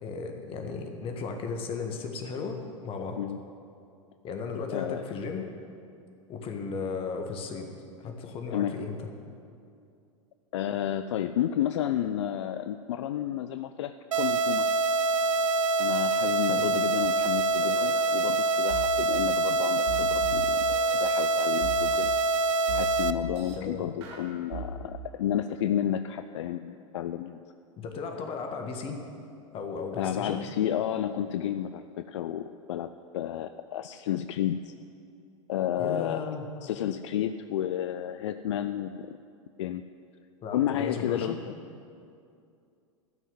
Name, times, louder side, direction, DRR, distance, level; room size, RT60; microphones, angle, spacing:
voice 1, 0.0-3.2 4.2-5.4 6.3-7.7 8.0-9.0 16.5-16.6 23.6-23.9 27.8-29.0 29.5-30.5 35.8-36.5 40.4-41.4, left 5 dB, 30° left, 4 dB, 1.6 m, -35 dB
voice 2, 4.7-5.0 8.5-8.7 10.5-14.7 15.8-22.1 22.7-27.4 30.0-34.7 35.5-36.4 36.6-39.2 39.6-39.8 40.5-41.5, left 11 dB, 60° left, 10 dB, 0.4 m, -31 dB
sound 1, 14.1-23.1, right 2 dB, 75° right, 0.5 m, -25 dB
sound 2, 17.0-17.1 17.3-17.9 18.7-18.9 19.9-21.1 21.6-22.1 22.7-23.5 24.0-24.7, right 6 dB, 55° right, 2.1 m, -38 dB
13.0 x 6.3 x 9.6 m, 2.5 s
figure-of-eight pair, 90°, 17 cm